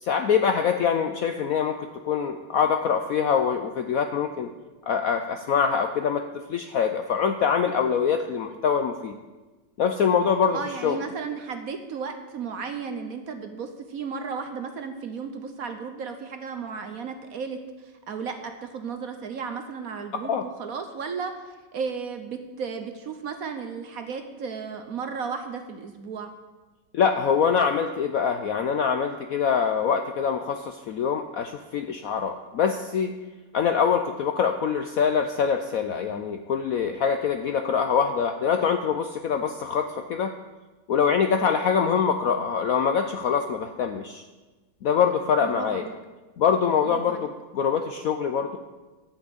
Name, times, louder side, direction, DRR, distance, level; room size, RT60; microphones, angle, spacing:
voice 1, 0.0-4.5 4.9-9.1 9.8-11.0 20.3-20.4 26.9-33.1 33.5-40.3 40.9-44.2 44.8-45.9 46.4-48.6, left 7 dB, 70° left, 7 dB, 0.8 m, -24 dB
voice 2, 10.5-26.3 45.4-45.9 46.8-47.3, right 5 dB, 60° right, 7 dB, 1.1 m, -34 dB
12.0 x 6.1 x 8.2 m, 1.2 s
omnidirectional pair, 2.1 m